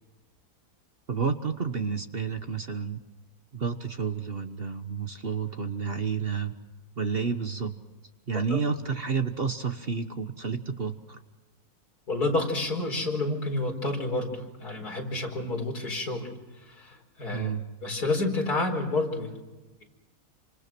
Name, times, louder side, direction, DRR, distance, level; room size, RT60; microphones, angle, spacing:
voice 1, 1.1-3.0 3.5-6.5 7.0-7.8 8.3-11.2 17.3-17.7, right 5 dB, 40° right, 8 dB, 1.3 m, -30 dB
voice 2, 12.1-16.3 16.6-17.5 17.8-19.4, left 2 dB, 75° left, 2 dB, 5.2 m, -29 dB
29.0 x 26.0 x 6.1 m, 1.1 s
omnidirectional pair, 1.7 m